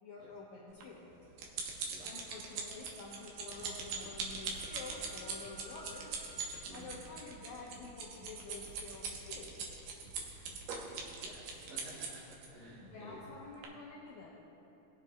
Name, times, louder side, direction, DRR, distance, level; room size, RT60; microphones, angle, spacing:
voice 1, 0.0-1.1 2.0-6.2 6.7-9.5 12.8-14.3, left 3 dB, 70° left, -5 dB, 2.2 m, -49 dB
sound 1, 0.8-12.5 13.1-13.3 13.6-13.7, right 5 dB, 90° right, 2.6 m, -41 dB
voice 2, 1.8-2.2 6.6-7.0 10.2-13.2, equal, 70° right, -9 dB, 3.7 m, -54 dB
Wind instrument woodwind instrument, 3.0-6.4, equal, 85° left, 2.7 m, -59 dB
sound 2, 3.6-10.8, right 1 dB, 30° right, 2.0 m, -57 dB
19.5 x 7.5 x 2.3 m, 2.9 s
omnidirectional pair, 3.7 m